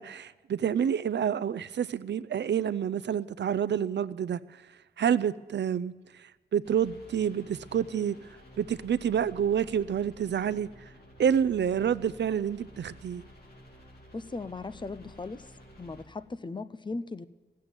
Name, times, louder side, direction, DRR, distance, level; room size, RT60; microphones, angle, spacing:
voice 1, 0.0-4.4 5.0-8.2 8.6-10.7 11.2-13.2, right 8 dB, 75° right, 18 dB, 0.4 m, -28 dB
sound 1, 6.6-16.0, equal, 60° left, 2.8 m, -52 dB
voice 2, 14.1-15.4 15.8-17.3, left 3 dB, 25° left, 14 dB, 0.5 m, -38 dB
15.0 x 7.6 x 9.5 m, 1.3 s
wide cardioid pair, 140°, 18 cm